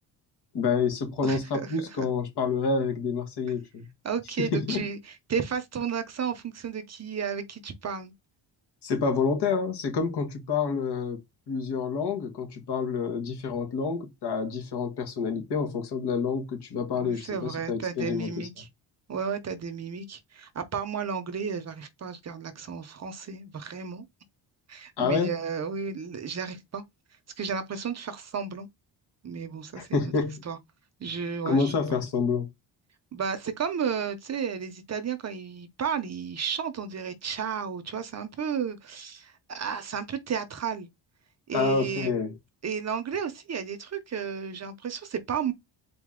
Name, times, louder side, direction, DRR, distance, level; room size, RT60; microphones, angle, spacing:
voice 1, 0.5-3.9 4.4-4.8 8.8-11.2 11.5-18.5 25.0-25.4 29.7-30.4 31.4-32.5 41.5-42.3, left 5 dB, 60° left, 1.6 m, -28 dB
voice 2, 1.2-2.1 4.0-8.1 17.0-18.7 19.1-24.0 24.7-26.8 27.4-28.7 29.2-30.1 30.5-30.6 31.0-31.7 33.1-40.9 41.5-42.1 42.6-45.5, right 6 dB, 35° right, 0.7 m, -33 dB
4.2 x 2.8 x 3.6 m
cardioid pair, 140°, 45 cm